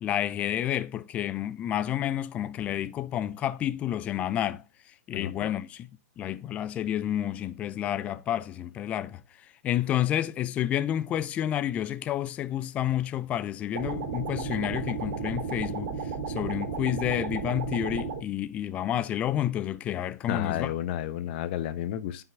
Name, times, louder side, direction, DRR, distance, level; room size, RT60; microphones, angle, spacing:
voice 1, 0.0-4.6 5.1-5.9 6.2-9.2 9.6-15.9 16.3-20.7, left 11 dB, 15° left, 0.3 m, -30 dB
voice 2, 5.1-5.5 20.3-22.2, left 11 dB, 35° left, 0.8 m, -32 dB
sound 1, 13.7-18.2, right 5 dB, 40° right, 3.3 m, -33 dB
9.4 x 5.8 x 3.8 m
hypercardioid pair, 150°, 9 cm